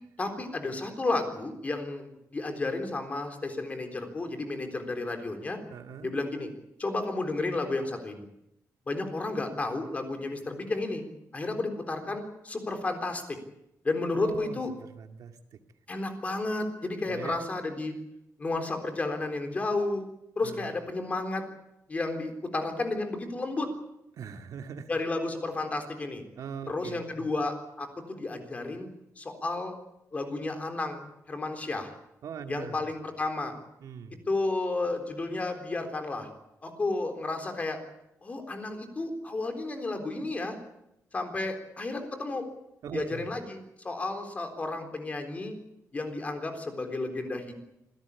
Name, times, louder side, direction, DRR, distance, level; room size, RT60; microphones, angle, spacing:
voice 1, 0.2-5.6 6.0-6.5 6.8-8.3 8.9-11.0 11.3-13.4 13.8-14.7 15.9-17.9 18.4-20.1 20.4-21.4 21.9-23.7 24.9-26.2 26.7-28.9 29.2-29.8 30.1-31.9 32.5-33.5 34.3-36.3 36.6-37.8 38.2-40.6 41.1-42.5 42.9-45.6 45.9-47.5, left 2 dB, 25° left, 5 dB, 3.8 m, -32 dB
voice 2, 5.7-6.1 14.1-15.6 17.1-17.4 20.4-20.7 24.2-24.9 26.4-27.3 32.2-32.8 33.8-34.2 42.8-43.3, right 7 dB, 70° right, 6 dB, 2.2 m, -41 dB
26.0 x 17.5 x 8.5 m, 0.83 s
wide cardioid pair, 170°, 6 cm